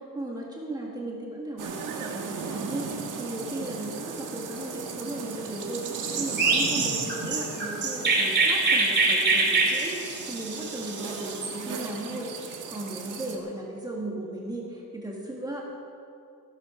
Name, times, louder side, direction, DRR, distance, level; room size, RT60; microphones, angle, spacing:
voice 1, 0.1-15.6, right 1 dB, 10° right, -3 dB, 1.9 m, -36 dB
sound 1, 1.6-13.4, right 6 dB, 65° right, 1.9 m, -36 dB
Chirp tweet, 6.4-11.5, right 3 dB, 30° right, 2.5 m, -24 dB
16.5 x 12.5 x 5.1 m, 2.5 s
cardioid pair, 170°, 33 cm